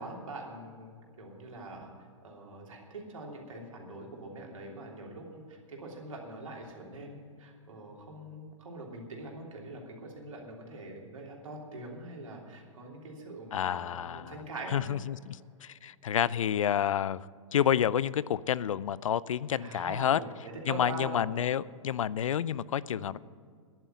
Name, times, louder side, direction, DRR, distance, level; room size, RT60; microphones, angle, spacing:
voice 1, 0.0-1.9 2.2-14.8 19.6-21.2 23.0-23.1, right 2 dB, 80° right, 0 dB, 3.2 m, -43 dB
voice 2, 13.5-14.4 14.7-17.3 17.5-20.2 20.7-23.2, left 9 dB, 80° left, 20 dB, 0.5 m, -29 dB
11.0 x 9.1 x 9.1 m, 2.1 s
hypercardioid pair, 120°, 17 cm